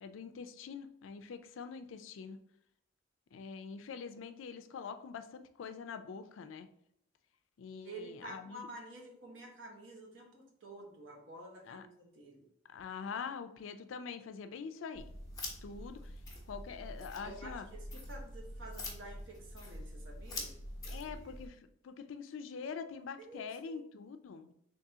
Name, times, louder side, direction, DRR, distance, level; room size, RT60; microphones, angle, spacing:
voice 1, 0.0-2.4 3.3-6.7 7.6-8.7 11.7-11.8 12.7-15.1 15.6-16.1 16.5-17.7 20.9-24.5, left 6 dB, 80° left, 9 dB, 0.4 m, -44 dB
voice 2, 7.8-12.5 17.1-20.6 20.8-21.2 23.2-23.8, right 1 dB, 75° right, -1 dB, 1.1 m, -50 dB
sound 1, 14.9-21.5, left 1 dB, 20° left, 0.9 m, -45 dB
3.6 x 3.3 x 2.7 m, 0.74 s
head